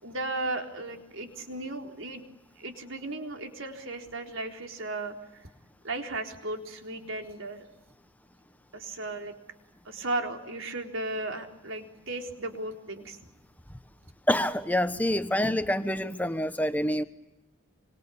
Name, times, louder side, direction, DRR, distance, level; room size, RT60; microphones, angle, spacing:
voice 1, 0.0-2.2 2.6-5.4 5.8-7.7 8.7-9.3 9.9-13.2, right 2 dB, 75° right, 3 dB, 4.0 m, -35 dB
voice 2, 14.3-17.0, left 1 dB, 10° left, 10 dB, 1.1 m, -26 dB
26.5 x 25.5 x 8.6 m, 0.94 s
head